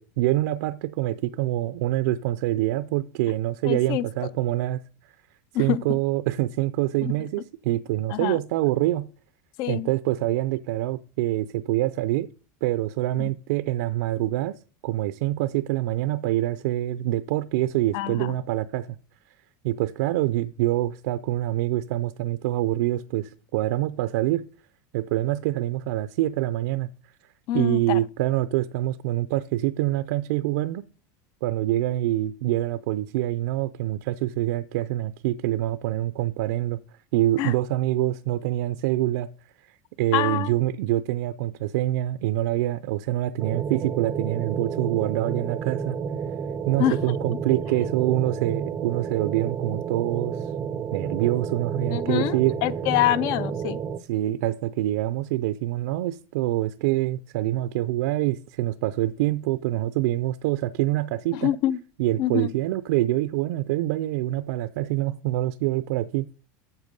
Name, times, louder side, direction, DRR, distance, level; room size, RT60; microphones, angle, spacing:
voice 1, 0.0-4.8 5.6-9.1 9.7-12.3 12.6-14.6 14.8-18.9 19.6-24.5 24.9-26.9 27.5-30.8 31.4-36.8 37.1-39.3 39.6-46.0 46.7-50.5 50.9-52.6 54.1-61.5 62.0-66.3, right 15 dB, 75° right, 0.5 m, -25 dB
voice 2, 3.6-4.1 5.5-5.8 7.0-7.1 8.1-8.4 9.6-9.9 13.2-13.3 17.9-18.3 27.5-28.0 37.4-37.5 40.1-40.5 46.8-47.0 51.9-53.8 61.3-61.8 62.2-62.5, left 13 dB, 45° left, 0.4 m, -25 dB
sound 1, 43.4-54.0, right 6 dB, 20° right, 0.4 m, -31 dB
8.2 x 7.1 x 5.2 m
supercardioid pair, 165°, 9 cm